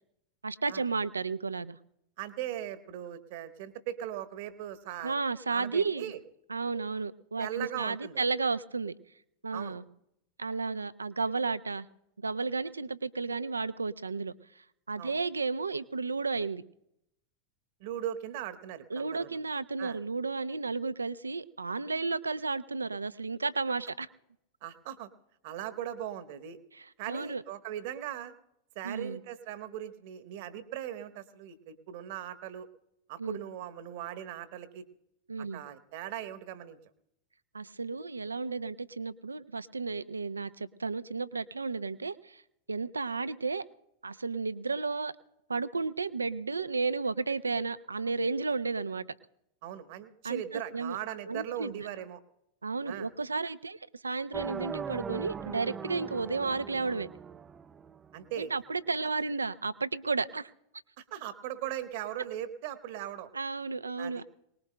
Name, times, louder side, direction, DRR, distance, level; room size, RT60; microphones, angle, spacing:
voice 1, 0.4-1.8 5.0-6.1 6.5-8.9 9.4-9.8 10.4-11.9 12.2-14.3 14.9-16.6 18.9-24.1 26.7-27.4 28.8-29.2 33.2-33.4 35.3-35.6 37.5-42.4 42.7-43.6 44.0-45.1 45.5-49.0 50.2-51.0 51.3-51.9 52.6-57.1 58.4-60.5 63.3-64.2, right 4 dB, 80° right, 15 dB, 0.5 m, -33 dB
voice 2, 2.2-5.1 5.5-6.2 7.4-8.2 9.5-9.8 15.0-15.2 17.8-19.4 19.8-20.0 24.6-25.1 25.4-26.6 27.0-28.3 28.7-32.7 33.1-34.8 35.5-36.8 49.6-52.2 52.9-53.1 58.1-58.5 61.0-63.3 64.0-64.2, right 11 dB, 50° right, 9 dB, 1.1 m, -39 dB
sound 1, 54.3-58.4, right 6 dB, 20° right, 0.4 m, -40 dB
23.0 x 19.5 x 2.2 m, 0.80 s
figure-of-eight pair, 90°, 0 cm